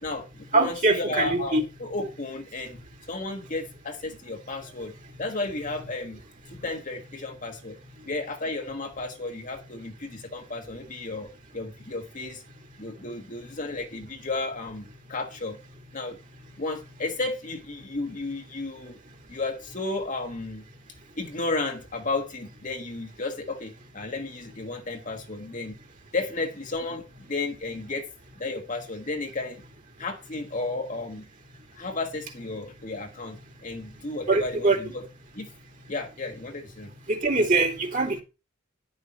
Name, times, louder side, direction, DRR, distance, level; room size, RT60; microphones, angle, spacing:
voice 1, 0.0-2.8 3.1-4.9 5.2-6.2 6.5-7.8 8.0-12.4 12.8-15.6 15.9-16.2 16.6-19.0 19.3-20.6 21.2-25.7 26.1-28.1 28.4-29.6 30.0-31.3 31.7-35.0 35.3-35.5 35.9-36.9, left 3 dB, 40° left, 1.6 m, -33 dB
voice 2, 0.5-1.6 34.3-34.8 37.1-38.2, right 3 dB, 40° right, 2.8 m, -23 dB
10.5 x 6.8 x 4.4 m
head